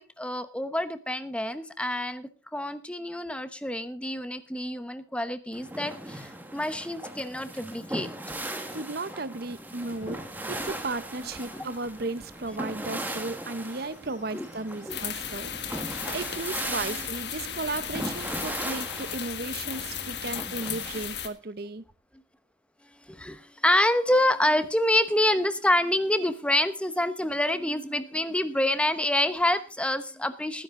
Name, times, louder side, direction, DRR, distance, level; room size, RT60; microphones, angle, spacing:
voice 1, 0.0-8.1 8.4-8.8 11.5-11.7 14.3-14.5 14.9-15.0 15.9-16.0 17.0-17.1 23.1-30.6, left 1 dB, 5° left, 12 dB, 0.9 m, -27 dB
sound 1, 5.5-21.0, right 1 dB, 10° right, 1.6 m, -38 dB
voice 2, 8.5-10.2 10.5-15.5 15.8-21.8, right 3 dB, 55° right, 15 dB, 0.9 m, -35 dB
Fowl / Bird, 9.8-18.1, left 2 dB, 80° left, 4.1 m, -56 dB
sound 2, 14.9-21.3, left 9 dB, 60° left, 1.6 m, -35 dB
19.0 x 10.5 x 3.8 m, 0.35 s
head